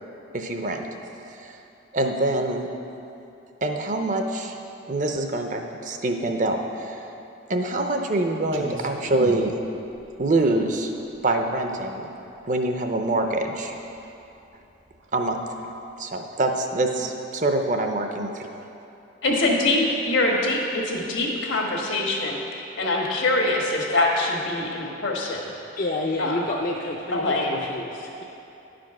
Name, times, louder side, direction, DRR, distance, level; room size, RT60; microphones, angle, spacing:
voice 1, 0.3-0.9 1.3-1.6 1.9-2.7 3.6-4.5 4.9-7.1 7.5-9.5 10.2-10.9 11.2-12.1 12.4-13.7 15.1-15.6 16.0-18.5, right 2 dB, 40° right, 4 dB, 0.6 m, -25 dB
Clock, 8.5-15.9, right 1 dB, 90° right, 0.9 m, -41 dB
voice 2, 19.2-25.4 26.2-26.4 27.1-27.7, left 2 dB, 80° left, -1 dB, 1.5 m, -24 dB
voice 3, 25.8-27.2 27.5-28.2, left 2 dB, 45° left, -2 dB, 0.5 m, -29 dB
10.5 x 5.1 x 5.9 m, 2.8 s
head